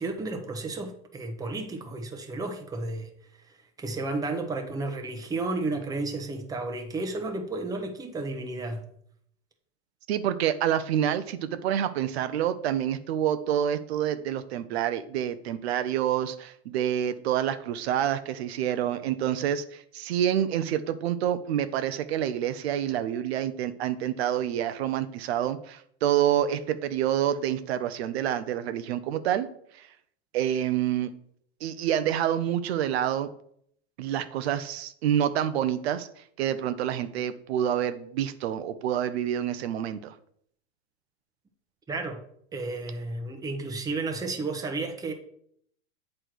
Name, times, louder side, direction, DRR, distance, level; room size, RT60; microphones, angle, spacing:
voice 1, 0.0-3.1 3.5-8.8 41.9-42.2 42.5-45.1, right 3 dB, 10° right, 0.9 m, -32 dB
voice 2, 10.1-29.5 29.7-29.9 30.3-31.1 31.6-33.3 34.0-36.1 36.4-40.1, right 10 dB, 75° right, 0.6 m, -27 dB
8.2 x 3.2 x 6.0 m
supercardioid pair, 130°, 32 cm